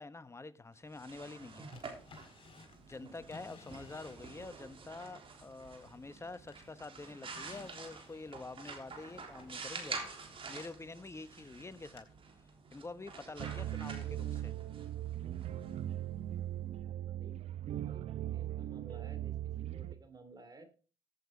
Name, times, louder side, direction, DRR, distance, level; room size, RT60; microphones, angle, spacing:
voice 1, 0.0-1.6 2.7-10.0 10.5-12.1 12.7-14.5, left 3 dB, 25° left, 1.1 m, -47 dB
sound 1, 0.8-16.5, right 4 dB, 50° right, 3.5 m, -48 dB
Drawer open or close, 1.7-4.6 5.1-6.2 6.5-11.2 12.0-12.1, left 5 dB, 50° left, 4.5 m, -58 dB
sound 2, 13.4-19.9, right 12 dB, 70° right, 0.8 m, -39 dB
voice 2, 16.7-17.4 17.8-20.7, right 2 dB, 35° right, 2.9 m, -55 dB
15.0 x 8.4 x 3.9 m
supercardioid pair, 55°, 12 cm